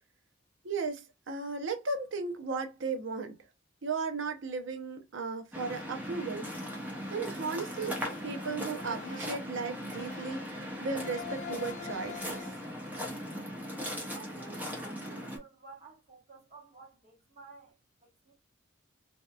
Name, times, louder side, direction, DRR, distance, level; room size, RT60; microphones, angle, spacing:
voice 1, 0.6-3.4 3.8-6.5 7.1-12.5, right 4 dB, 70° right, 0.6 m, -36 dB
Waves surf, 5.5-15.4, equal, 10° right, 0.8 m, -39 dB
sound 1, 7.8-8.4 8.8-9.5 9.9-10.6 11.0-12.7, left 6 dB, 35° left, 0.3 m, -45 dB
voice 2, 14.1-17.7 18.0-18.3, right 4 dB, 35° right, 1.1 m, -53 dB
2.7 x 2.3 x 2.3 m
head